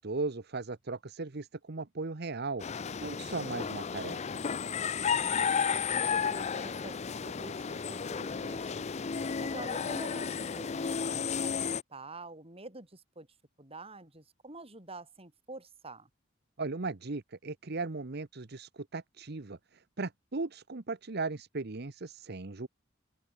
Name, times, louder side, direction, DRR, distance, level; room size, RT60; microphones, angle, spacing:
voice 1, 0.0-2.6 3.0-4.4 16.6-22.7, right 3 dB, 55° right, 1.0 m, -37 dB
sound 1, 2.6-11.8, left 6 dB, 35° left, 0.5 m, -33 dB
voice 2, 5.2-8.9 9.4-11.5 11.9-13.3 13.6-16.1, right 2 dB, 30° right, 5.8 m, -47 dB
open air
head